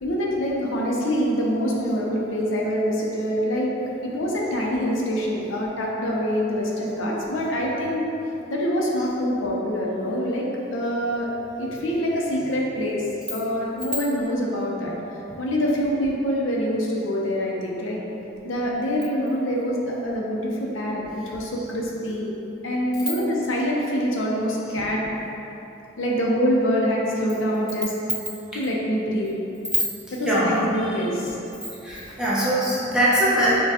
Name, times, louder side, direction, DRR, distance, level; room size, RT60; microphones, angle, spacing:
voice 1, 0.0-3.7 4.0-8.0 8.5-10.4 10.7-11.3 11.6-13.0 13.3-14.9 15.4-18.0 18.4-22.3 22.6-25.1 26.0-27.9 28.5-29.3 30.1-31.4, equal, 80° left, -3 dB, 0.6 m, -25 dB
voice 2, 30.3-30.6 31.8-33.6, right 1 dB, 5° right, -9 dB, 0.7 m, -21 dB
6.2 x 2.3 x 2.8 m, 2.9 s
head